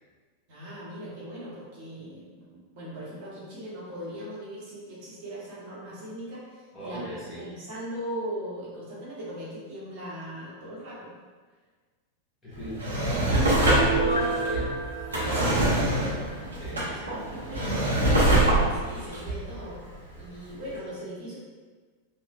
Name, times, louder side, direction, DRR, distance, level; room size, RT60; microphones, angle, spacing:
voice 1, 0.5-11.1 15.2-16.1 17.3-19.8 20.1-21.4, equal, 45° right, -8 dB, 0.9 m, -39 dB
voice 2, 6.7-7.5 12.4-14.8 15.5-16.1 16.6-17.1, equal, 15° left, -10 dB, 1.1 m, -37 dB
Drawer open or close, 12.6-20.3 20.7-20.8, right 1 dB, 75° right, 0.7 m, -24 dB
Piano, 13.8-16.5 16.8-16.9, right 3 dB, 80° left, 0.4 m, -31 dB
3.0 x 2.0 x 2.4 m, 1.4 s
figure-of-eight pair, 90°, 0 cm